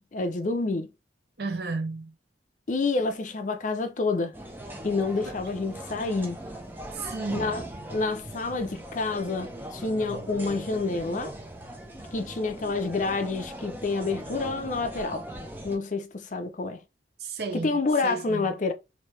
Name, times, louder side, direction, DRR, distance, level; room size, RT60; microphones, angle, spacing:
voice 1, 0.1-0.9 2.7-4.3 4.8-6.4 7.3-11.3 12.1-15.3 15.6-16.8 17.5-18.7, left 3 dB, 45° left, 0.5 m, -28 dB
voice 2, 1.4-2.1 5.3-5.4 6.9-7.4 17.2-17.7 18.0-18.5, right 3 dB, 60° right, 0.7 m, -32 dB
sound 1, 4.3-15.8, right 1 dB, 10° right, 0.6 m, -40 dB
3.1 x 2.7 x 3.1 m
head